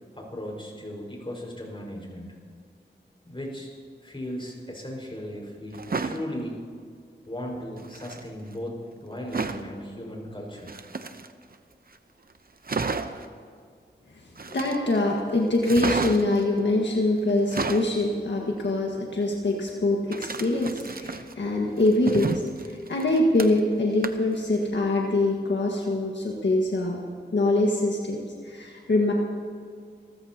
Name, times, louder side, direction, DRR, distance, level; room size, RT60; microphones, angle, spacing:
voice 1, 0.1-2.3 3.3-3.7 4.0-6.5 7.3-10.7, equal, 30° left, -1 dB, 5.3 m, -37 dB
sound 1, 5.7-6.2 7.8-8.2 9.3-9.7 10.6-11.5 12.0-12.1 12.3-12.4 12.6-13.3 14.4-15.0 15.6-16.4 17.3-17.9 20.1-21.3 21.8-23.7 24.0-24.4 24.7-24.8, right 4 dB, 55° right, 0.8 m, -31 dB
voice 2, 14.5-27.0 27.3-29.1, left 2 dB, 80° left, -1 dB, 1.7 m, -24 dB
28.0 x 14.5 x 2.9 m, 2.2 s
wide cardioid pair, 60°, 18 cm